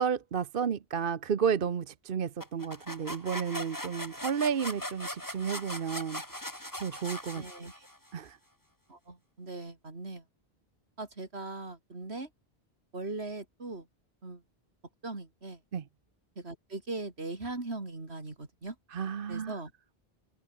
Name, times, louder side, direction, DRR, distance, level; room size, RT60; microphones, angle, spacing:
voice 1, 0.0-6.2 6.8-7.4 8.1-8.4 15.7-15.8 18.9-19.6, right 7 dB, 60° right, 1.1 m, -32 dB
sound 1, 2.4-8.1, left 1 dB, 20° left, 4.5 m, -40 dB
voice 2, 7.3-7.9 8.9-10.2 11.0-12.3 12.9-13.9 14.2-14.4 15.0-15.6 16.4-18.8 19.3-19.7, right 2 dB, 85° right, 3.8 m, -40 dB
omnidirectional pair, 1.1 m